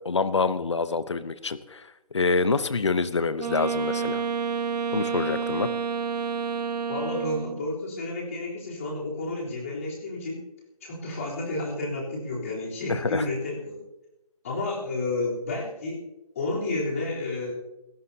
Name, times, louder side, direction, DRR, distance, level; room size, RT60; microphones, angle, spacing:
voice 1, 0.0-1.8 2.1-4.2 4.9-5.7 12.9-13.3, left 4 dB, 45° left, 13 dB, 0.9 m, -26 dB
Wind instrument woodwind instrument, 3.4-7.7, right 6 dB, 90° right, 0.7 m, -29 dB
voice 2, 6.9-10.4 10.8-13.8 14.4-16.0 16.4-17.5, left 2 dB, 20° left, -4 dB, 3.7 m, -31 dB
27.5 x 13.5 x 2.8 m, 0.96 s
hypercardioid pair, 175°, 20 cm